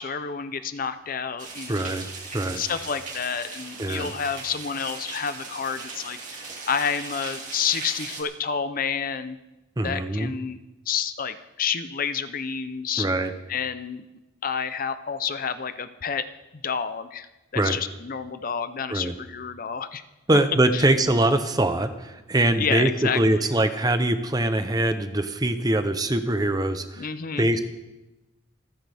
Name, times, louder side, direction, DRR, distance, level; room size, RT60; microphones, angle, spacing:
voice 1, 0.0-1.8 2.6-6.2 6.7-9.4 9.8-10.6 10.9-13.1 13.5-14.0 14.4-16.2 16.5-17.3 17.5-20.0 20.7-20.8 22.6-23.5 27.0-27.5, left 6 dB, 45° left, 12 dB, 0.6 m, -29 dB
sound 1, 1.4-8.2, right 4 dB, 35° right, 2.5 m, -38 dB
voice 2, 1.7-2.1 2.3-2.6 3.8-4.1 9.8-10.3 13.0-13.3 17.6-17.8 18.9-19.1 20.3-22.9 23.1-27.1 27.4-27.6, right 1 dB, 20° right, 9 dB, 0.8 m, -23 dB
27.0 x 10.0 x 3.5 m, 1.0 s
head